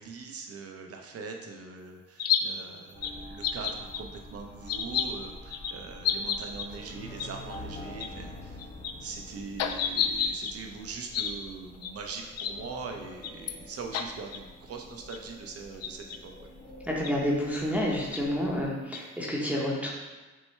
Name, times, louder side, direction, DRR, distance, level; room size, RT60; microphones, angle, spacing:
voice 1, 0.0-8.6 9.0-16.5, right 4 dB, 50° right, 3 dB, 0.7 m, -42 dB
sound 1, 2.2-2.4 3.0-3.1 3.4-4.0 4.7-5.0 5.5-5.7 6.0-6.7 7.2-7.3 7.5-7.6 8.0-8.1 8.6-8.9 9.6-10.5 11.1-11.3 11.8-11.9 12.4-12.5 13.2-13.5 13.9-14.0 14.3-14.4 15.1-15.2 15.8-16.2 17.0-17.1 18.1-18.2 18.9-19.0, left 9 dB, 55° left, 0.4 m, -29 dB
sound 2, 2.9-18.7, left 1 dB, 30° left, 1.1 m, -47 dB
voice 2, 16.8-19.9, equal, 5° right, -4 dB, 0.8 m, -29 dB
6.2 x 2.2 x 3.2 m, 1.2 s
cardioid pair, 90°, 30 cm